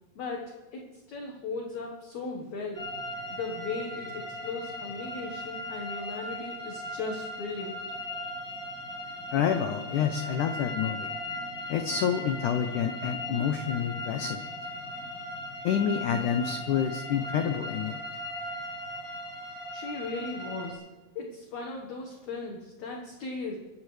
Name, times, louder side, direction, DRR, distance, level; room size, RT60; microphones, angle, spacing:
voice 1, 0.2-2.9 3.3-7.8 19.7-20.8 21.2-23.6, left 3 dB, 60° left, 0 dB, 2.3 m, -37 dB
sound 1, 2.7-20.7, left 1 dB, 25° left, 6.9 m, -38 dB
voice 2, 9.3-11.1 11.7-14.4 15.6-18.0, left 8 dB, 90° left, 7 dB, 1.7 m, -28 dB
24.0 x 14.0 x 3.3 m, 1.3 s
omnidirectional pair, 4.6 m